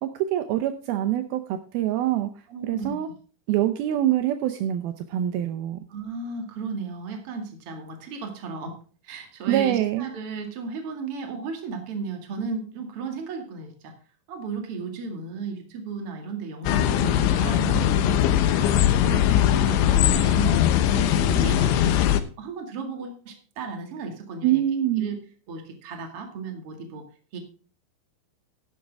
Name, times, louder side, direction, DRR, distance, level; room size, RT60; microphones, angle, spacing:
voice 1, 0.0-2.3 2.6-3.1 3.5-5.8 9.5-10.1 24.4-25.1, right 12 dB, 85° right, 9 dB, 2.1 m, -25 dB
voice 2, 2.5-3.0 5.9-8.8 9.0-14.0 14.3-18.3 18.6-20.6 20.9-24.6 25.0-25.2 25.5-27.1 27.3-27.4, right 4 dB, 45° right, 5 dB, 2.1 m, -35 dB
sound 1, 16.7-22.2, left 11 dB, 85° left, 3.3 m, -20 dB
11.5 x 11.0 x 3.5 m, 0.39 s
omnidirectional pair, 5.3 m